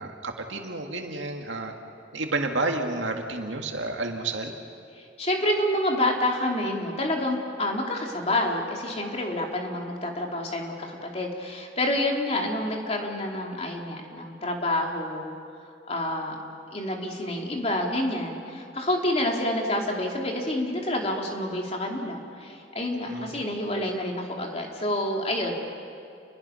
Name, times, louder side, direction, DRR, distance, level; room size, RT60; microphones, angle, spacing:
voice 1, 0.0-1.7 2.1-4.5 23.1-23.3, right 2 dB, 85° right, 3 dB, 2.2 m, -30 dB
voice 2, 5.0-15.3 15.9-16.3 16.7-25.5, left 1 dB, 35° left, 1 dB, 2.8 m, -28 dB
30.0 x 21.5 x 5.8 m, 2.5 s
head